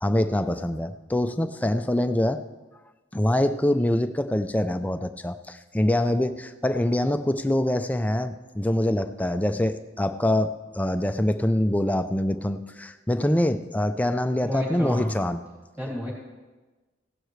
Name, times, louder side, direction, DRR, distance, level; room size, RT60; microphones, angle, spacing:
voice 1, 0.0-2.4 3.1-15.4, left 1 dB, 10° left, 8 dB, 0.4 m, -25 dB
voice 2, 14.4-15.2 15.8-16.1, equal, 10° right, -4 dB, 3.2 m, -30 dB
16.5 x 11.5 x 3.2 m, 1.2 s
head